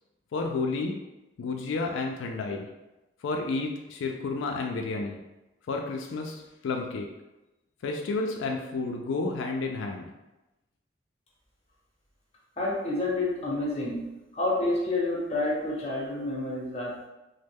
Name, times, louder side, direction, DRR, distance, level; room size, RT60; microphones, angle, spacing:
voice 1, 0.3-1.0 1.4-2.7 3.2-5.2 5.7-7.1 7.8-10.1, left 3 dB, 85° left, 2 dB, 0.3 m, -31 dB
voice 2, 12.6-14.0 14.3-17.1, left 2 dB, 30° left, -4 dB, 0.7 m, -29 dB
3.1 x 2.0 x 3.5 m, 1.0 s
head